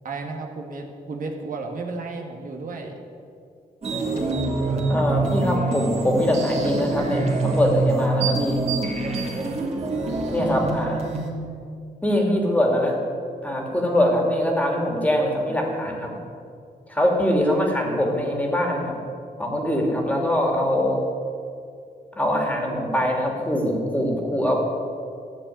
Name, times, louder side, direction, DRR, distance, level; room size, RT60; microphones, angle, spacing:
voice 1, 0.0-2.9 9.3-9.4, right 3 dB, 55° right, 1 dB, 1.8 m, -33 dB
sound 1, 3.8-11.3, right 3 dB, 40° right, 2.6 m, -25 dB
voice 2, 4.9-8.6 10.3-11.0 12.0-13.0 13.4-16.1 16.9-19.0 19.4-21.0 22.1-24.6, equal, 10° left, 0 dB, 2.5 m, -23 dB
13.5 x 6.7 x 9.3 m, 2.3 s
wide cardioid pair, 120°, 16 cm